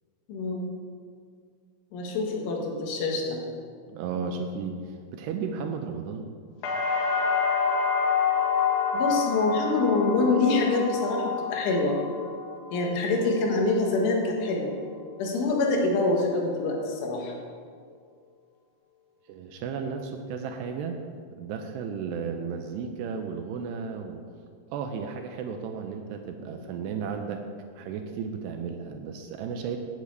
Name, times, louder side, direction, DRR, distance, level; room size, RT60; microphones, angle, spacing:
voice 1, 0.3-0.7 1.9-3.4 8.9-12.0 12.7-14.7 15.2-17.3, left 3 dB, 90° left, 0 dB, 4.1 m, -25 dB
voice 2, 3.9-6.3 19.3-21.0 21.4-24.2 24.7-27.4 27.7-29.8, right 6 dB, 80° right, 5 dB, 2.6 m, -34 dB
sound 1, 6.6-14.5 14.9-15.6, left 5 dB, 60° left, 3.0 m, -28 dB
9.0 x 8.2 x 8.3 m, 2.1 s
omnidirectional pair, 5.3 m